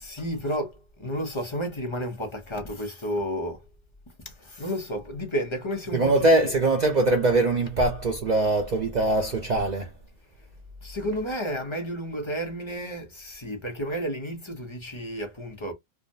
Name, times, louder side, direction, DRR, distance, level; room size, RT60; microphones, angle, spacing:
voice 1, 0.0-3.6 4.4-6.5 10.8-15.7, equal, 30° left, 0.7 m, -31 dB
voice 2, 5.9-9.9, right 2 dB, 45° right, 0.6 m, -22 dB
3.4 x 2.1 x 2.5 m
omnidirectional pair, 1.2 m